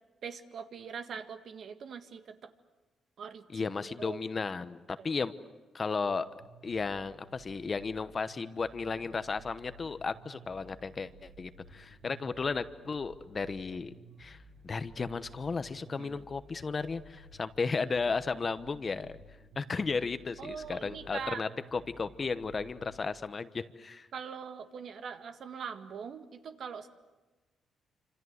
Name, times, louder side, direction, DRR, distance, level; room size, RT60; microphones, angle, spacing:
voice 1, 0.2-2.5 3.2-4.2 5.0-5.1 16.0-16.2 20.4-21.4 24.1-26.9, right 6 dB, 60° right, 8 dB, 1.7 m, -42 dB
voice 2, 3.5-5.3 5.7-6.3 6.6-13.9 14.2-14.4 14.6-19.2 19.6-24.1, left 4 dB, 35° left, 13 dB, 1.0 m, -34 dB
sound 1, 6.1-23.0, right 1 dB, 80° right, 7.0 m, -55 dB
27.0 x 27.0 x 8.2 m, 1.2 s
cardioid pair, 105°, 0 cm